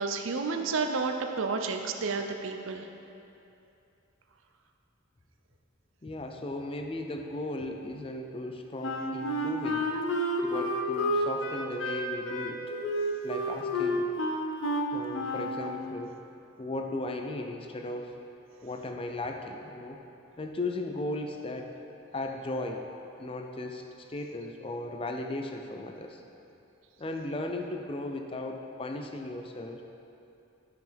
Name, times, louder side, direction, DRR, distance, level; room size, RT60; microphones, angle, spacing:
voice 1, 0.0-2.9, right 4 dB, 70° right, 5 dB, 0.5 m, -31 dB
voice 2, 6.0-9.9 10.4-12.6 13.2-14.1 14.9-16.2 16.6-18.1 18.6-20.0 20.4-21.8 22.1-22.9 23.2-26.2 27.0-29.8, left 2 dB, 25° left, 3 dB, 0.4 m, -36 dB
Wind instrument woodwind instrument, 8.8-15.6, equal, 65° left, 0.7 m, -30 dB
12.0 x 5.6 x 3.5 m, 2.8 s
head